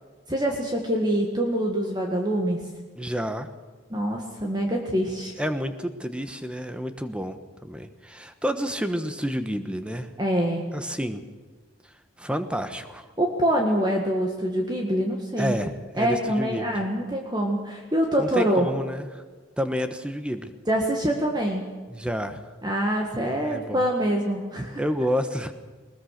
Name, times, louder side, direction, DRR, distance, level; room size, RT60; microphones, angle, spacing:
voice 1, 0.3-2.6 3.9-5.3 10.2-10.6 13.2-15.5 16.0-18.7 20.7-21.7 22.6-24.8, equal, 20° right, 1 dB, 1.7 m, -25 dB
voice 2, 2.9-3.5 5.4-10.1 10.7-11.2 12.2-13.0 15.4-16.7 18.2-19.2 19.6-20.5 21.9-22.4 23.4-23.9 24.8-25.5, equal, 5° right, 9 dB, 1.1 m, -29 dB
20.0 x 20.0 x 6.6 m, 1.4 s
head